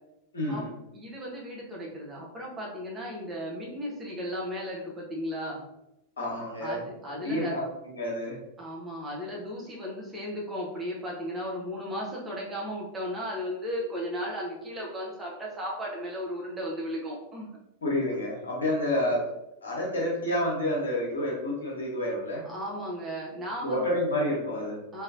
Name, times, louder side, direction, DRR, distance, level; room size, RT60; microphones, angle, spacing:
voice 1, 0.3-0.7 6.2-6.8 7.2-7.6 7.9-8.4 17.8-19.2 19.6-22.4 23.6-24.8, left 1 dB, 70° left, -3 dB, 1.0 m, -29 dB
voice 2, 0.9-5.6 6.6-7.6 8.6-17.5 22.4-23.9 24.9-25.0, equal, 15° right, -4 dB, 0.9 m, -35 dB
3.1 x 2.8 x 2.5 m, 0.89 s
figure-of-eight pair, 90°, 0 cm